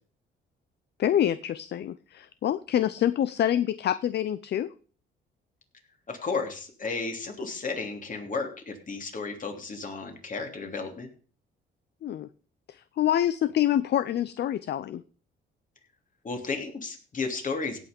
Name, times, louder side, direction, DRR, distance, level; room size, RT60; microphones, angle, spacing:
voice 1, 1.0-4.7 12.0-12.3 12.7-15.0, left 11 dB, 60° left, 15 dB, 0.6 m, -26 dB
voice 2, 6.1-11.1 16.2-17.8, left 4 dB, 40° left, 4 dB, 3.0 m, -33 dB
16.5 x 6.1 x 5.2 m, 0.41 s
cardioid pair, 90°, 20 cm